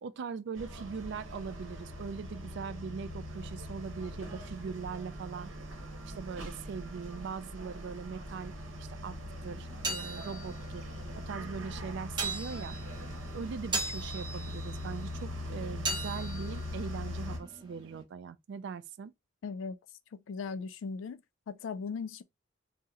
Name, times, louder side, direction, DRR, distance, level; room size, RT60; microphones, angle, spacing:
voice 1, 0.0-5.5 6.0-9.2 9.4-10.8 11.3-12.8 13.3-19.1, right 5 dB, 65° right, 0.3 m, -41 dB
sound 1, 0.5-17.4, left 1 dB, 80° right, 0.9 m, -41 dB
sound 2, 9.5-18.0, right 2 dB, 25° right, 0.7 m, -40 dB
voice 2, 19.4-19.8 20.1-21.2 21.5-22.2, left 5 dB, 70° left, 0.3 m, -38 dB
2.8 x 2.0 x 3.5 m
head